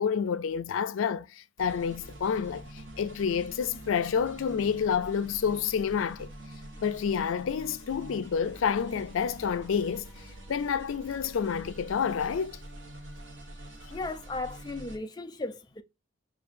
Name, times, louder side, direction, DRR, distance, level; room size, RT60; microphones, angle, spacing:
voice 1, 0.0-6.3 6.8-10.0 10.5-12.6 13.8-14.0, left 7 dB, 85° left, 0.4 m, -29 dB
sound 1, 1.6-15.0, right 1 dB, 75° right, 1.2 m, -46 dB
voice 2, 13.9-15.8, left 2 dB, 20° left, 0.4 m, -36 dB
6.9 x 2.8 x 2.5 m
head